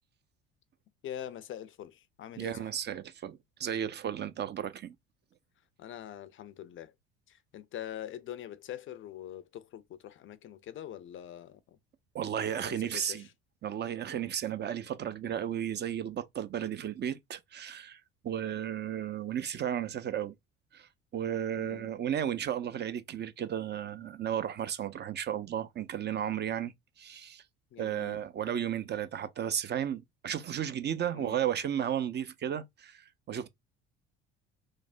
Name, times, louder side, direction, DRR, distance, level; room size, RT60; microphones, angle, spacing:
voice 1, 1.0-2.7 5.8-6.9 7.3-11.8 12.5-13.3 21.6-21.9 27.7-28.2 31.1-31.4, left 11 dB, 40° left, 0.4 m, -44 dB
voice 2, 2.4-4.9 12.1-13.2 13.6-20.3 20.7-26.7 27.0-27.4 27.8-33.5, right 9 dB, 35° right, 0.4 m, -34 dB
3.2 x 2.0 x 2.4 m
hypercardioid pair, 65°, 32 cm